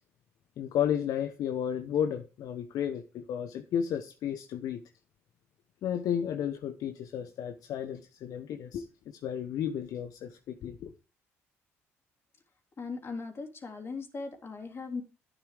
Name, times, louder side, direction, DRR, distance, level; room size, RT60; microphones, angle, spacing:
voice 1, 0.6-4.8 5.8-10.9, left 9 dB, 60° left, 0.8 m, -33 dB
voice 2, 12.8-15.0, left 4 dB, 35° left, 3.2 m, -38 dB
11.0 x 9.5 x 3.3 m
hypercardioid pair, 55°, 7 cm